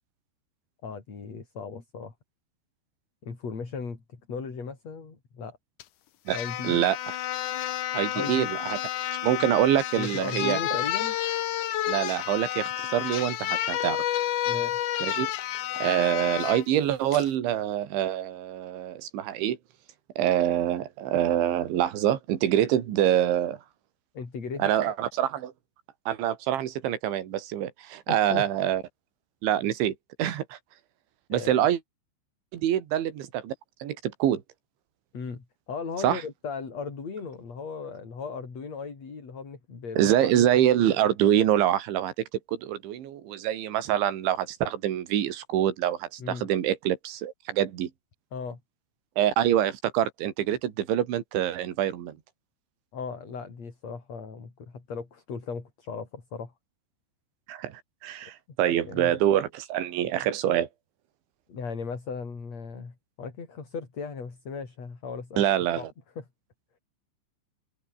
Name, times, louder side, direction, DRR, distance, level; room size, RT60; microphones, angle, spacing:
voice 1, 0.8-2.1 3.2-5.6 6.3-6.9 8.1-8.5 10.0-11.2 14.5-14.9 24.1-24.7 28.1-28.5 31.3-31.7 35.1-40.7 46.2-46.5 48.3-48.6 52.9-56.5 58.8-59.2 61.5-65.4 65.8-65.9 66.2-66.3, left 5 dB, 35° left, 5.3 m, -37 dB
sound 1, 5.8-5.9 6.3-16.6 17.1-17.3, left 12 dB, 70° left, 1.9 m, -30 dB
voice 2, 6.6-7.2 7.9-8.8 9.2-10.6 11.9-14.0 15.0-15.3 15.8-19.6 20.2-23.6 24.6-25.5 26.1-28.8 29.4-29.9 30.2-30.6 31.3-31.8 32.5-33.5 33.8-34.4 36.0-36.2 40.0-47.9 49.2-52.2 57.5-60.7 65.4-65.9, right 11 dB, 75° right, 4.8 m, -25 dB
omnidirectional pair, 5.4 m